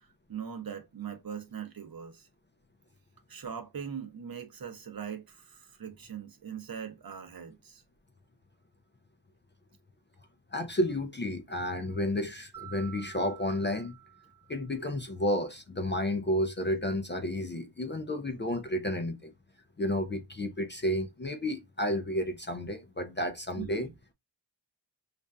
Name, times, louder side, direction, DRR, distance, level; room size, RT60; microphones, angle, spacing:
voice 1, 0.3-2.3 3.3-7.8 23.6-23.9, right 7 dB, 50° right, 0.7 m, -41 dB
voice 2, 10.5-13.9 14.5-19.3 19.8-23.9, left 1 dB, 25° left, 0.4 m, -31 dB
Mallet percussion, 12.5-14.9, right 13 dB, 5° right, 0.8 m, -50 dB
5.1 x 2.4 x 2.2 m
wide cardioid pair, 85°, 44 cm